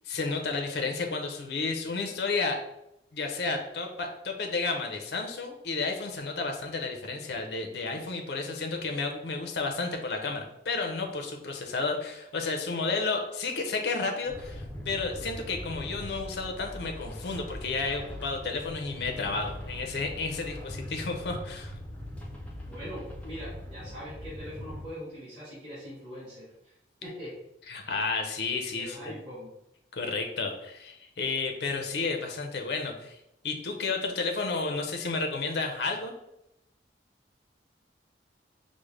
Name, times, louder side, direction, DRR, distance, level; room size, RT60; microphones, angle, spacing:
voice 1, 0.1-2.6 3.1-21.7 27.7-28.9 29.9-33.2 33.4-36.1, left 4 dB, 65° left, 3 dB, 0.5 m, -32 dB
sound 1, 14.3-24.8, left 1 dB, 10° left, 0.5 m, -41 dB
voice 2, 22.6-26.7 27.0-27.3 28.8-29.5, equal, 30° right, -11 dB, 1.4 m, -42 dB
4.9 x 2.0 x 3.1 m, 0.84 s
head